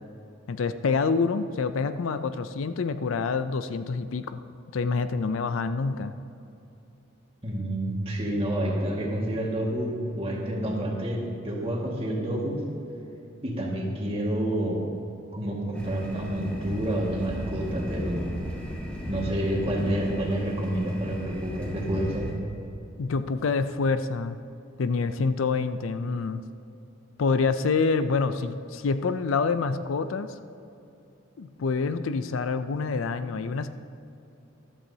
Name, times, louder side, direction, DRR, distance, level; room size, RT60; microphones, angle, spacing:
voice 1, 0.5-4.4 4.7-6.1 23.0-24.4 24.8-26.4 27.2-30.3 31.4-33.7, left 4 dB, 75° left, 11 dB, 0.5 m, -27 dB
voice 2, 7.4-12.6 13.4-14.8 15.3-18.3 19.1-22.3, right 1 dB, 30° right, -2 dB, 1.8 m, -29 dB
sound 1, 15.7-22.3, equal, 5° left, 1.5 m, -35 dB
14.0 x 12.0 x 2.8 m, 2.8 s
head